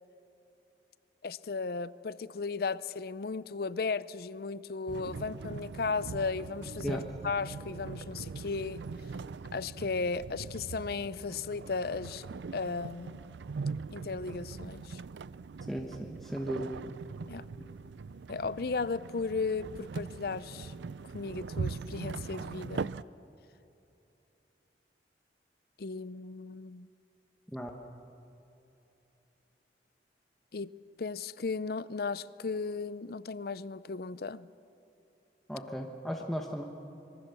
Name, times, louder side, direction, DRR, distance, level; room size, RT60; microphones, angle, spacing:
voice 1, 1.2-8.8 9.5-13.2 13.9-15.0 17.3-17.4 18.3-20.7 21.1-22.9 25.8-26.9 30.5-30.7 31.0-34.5, left 4 dB, 55° left, 17 dB, 0.5 m, -35 dB
sound 1, 4.9-23.0, right 4 dB, 80° right, 0.4 m, -41 dB
voice 2, 15.7-16.9 27.5-27.7 35.5-36.6, equal, ahead, 1 dB, 1.2 m, -36 dB
25.5 x 22.5 x 7.0 m, 2.8 s
head